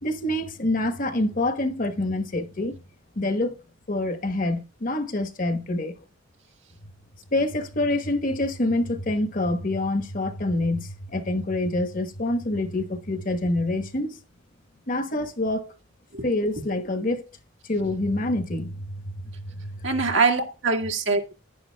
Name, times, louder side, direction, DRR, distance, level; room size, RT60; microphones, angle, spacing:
voice 1, 0.0-2.8 3.1-3.6 3.9-6.0 7.3-14.2 14.9-15.7 16.2-17.3 17.6-19.7, left 2 dB, 45° left, 1.1 m, -26 dB
voice 2, 19.8-21.3, right 4 dB, 75° right, 1.8 m, -23 dB
11.0 x 10.5 x 2.2 m
head